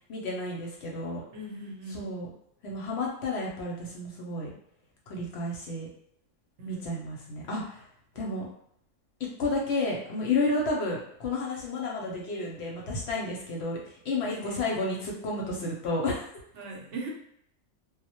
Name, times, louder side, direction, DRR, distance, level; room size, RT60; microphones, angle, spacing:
voice 1, 0.1-1.2 1.9-2.3 2.6-4.5 5.1-5.9 6.7-7.8 8.2-8.5 9.2-16.3, left 2 dB, 65° left, -2 dB, 0.8 m, -31 dB
voice 2, 1.3-2.1 6.6-6.9 8.1-8.3 14.2-14.7 16.5-17.1, right 1 dB, 70° right, -1 dB, 0.9 m, -40 dB
2.1 x 2.1 x 2.8 m, 0.70 s
omnidirectional pair, 1.3 m